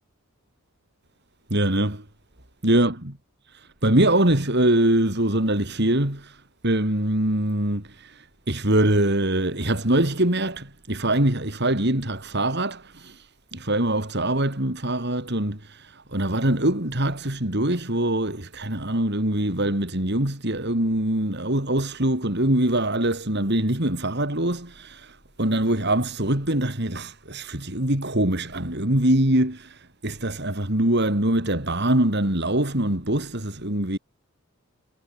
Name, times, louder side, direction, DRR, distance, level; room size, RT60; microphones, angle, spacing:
voice 1, 1.5-2.0 2.6-2.9 3.8-34.0, right 1 dB, 50° right, 3.8 m, -23 dB
head